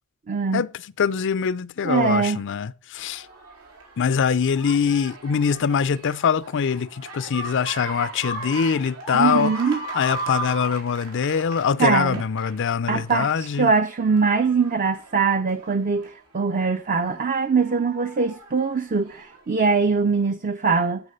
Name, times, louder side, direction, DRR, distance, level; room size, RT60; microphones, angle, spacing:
voice 1, 0.3-0.6 1.8-2.4 9.1-9.8 11.8-12.2 12.9-21.0, right 5 dB, 35° right, 0.6 m, -22 dB
voice 2, 1.0-3.3 4.0-9.5 9.9-13.7, left 6 dB, 55° left, 0.5 m, -23 dB
sound 1, 2.9-13.1 13.6-16.1 16.6-19.4 20.2-20.3, right 2 dB, 85° right, 4.4 m, -37 dB
9.8 x 8.4 x 5.3 m
head